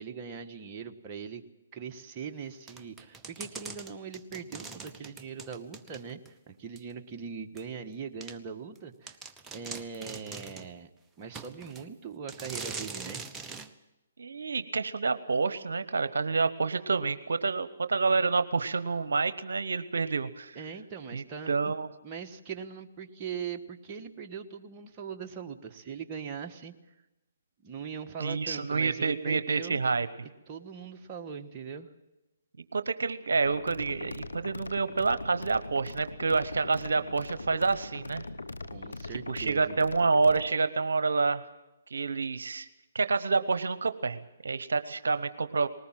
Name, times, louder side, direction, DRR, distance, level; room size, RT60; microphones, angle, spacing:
voice 1, 0.0-1.4 1.7-6.2 6.5-9.2 9.5-10.9 11.2-13.2 20.5-21.7 22.0-26.7 27.6-29.8 30.5-31.9 38.6-39.8, right 6 dB, 30° right, 3 dB, 1.5 m, -41 dB
sound 1, 2.7-6.3 6.8-6.9 7.6-7.7 8.2-8.4 8.8-8.9 9.1-10.7 11.3-11.9 12.3-13.7, right 4 dB, 10° right, 1.0 m, -42 dB
voice 2, 14.2-20.6 21.1-21.9 28.2-30.1 32.7-38.2 39.3-41.5 41.9-42.7 42.9-45.7, right 4 dB, 75° right, 12 dB, 0.9 m, -28 dB
sound 2, 33.4-40.5, left 2 dB, 90° left, 1.1 m, -41 dB
20.5 x 19.0 x 7.5 m, 1.0 s
hypercardioid pair, 140°, 0 cm